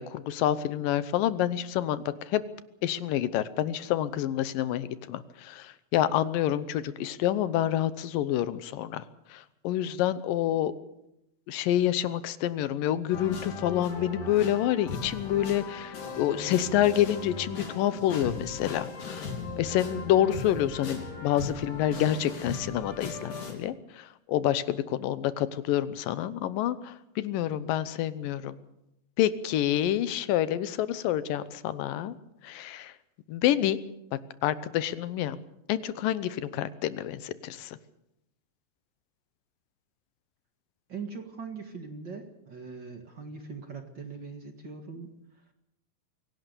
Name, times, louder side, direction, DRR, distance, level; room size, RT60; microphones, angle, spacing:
voice 1, 0.0-2.4 2.8-9.0 9.3-10.7 11.5-19.3 19.6-28.6 29.2-32.2 32.4-32.9 33.3-33.8 34.4-35.4 35.7-37.8, left 12 dB, 80° left, 15 dB, 2.6 m, -28 dB
sound 1, 13.1-23.5, left 4 dB, 65° left, 5.0 m, -38 dB
voice 2, 40.9-45.1, right 5 dB, 40° right, 5 dB, 2.0 m, -41 dB
24.5 x 17.0 x 6.9 m, 0.84 s
omnidirectional pair, 3.9 m